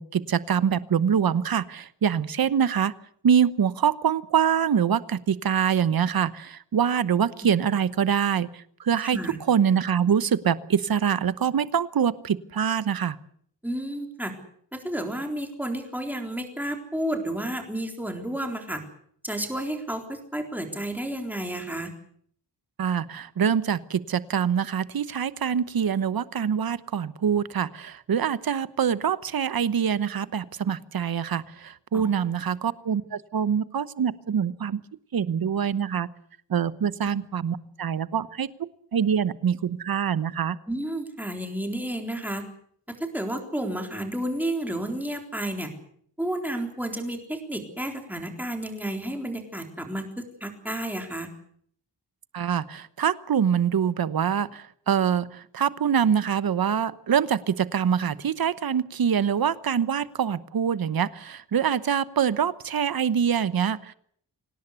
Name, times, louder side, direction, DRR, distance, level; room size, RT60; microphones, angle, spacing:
voice 1, 0.0-2.9 3.2-9.2 9.5-13.2 22.8-34.8 35.1-36.1 36.5-40.6 52.3-63.9, right 8 dB, 55° right, 16 dB, 1.0 m, -25 dB
voice 2, 13.6-14.3 14.7-18.8 19.2-21.9 31.9-32.1 40.7-42.4 42.9-45.7 46.2-51.3, right 1 dB, 5° right, 4 dB, 3.8 m, -31 dB
25.5 x 18.0 x 8.2 m, 0.64 s
wide cardioid pair, 165°, 42 cm